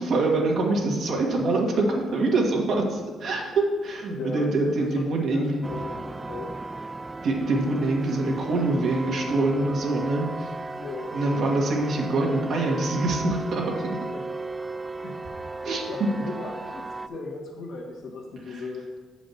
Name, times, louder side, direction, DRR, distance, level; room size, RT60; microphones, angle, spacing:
voice 1, 0.0-5.7 7.2-10.5 11.1-13.8 15.6-15.8 18.5-18.6, right 2 dB, 65° right, -1 dB, 1.7 m, -25 dB
voice 2, 4.1-6.5 10.7-11.4 14.1-14.2 15.0-15.2 15.9-18.9, left 3 dB, 70° left, -1 dB, 1.8 m, -37 dB
sound 1, 5.6-17.1, right 3 dB, 20° right, 0.3 m, -36 dB
6.9 x 5.0 x 7.0 m, 1.4 s
cardioid pair, 90°, 0 cm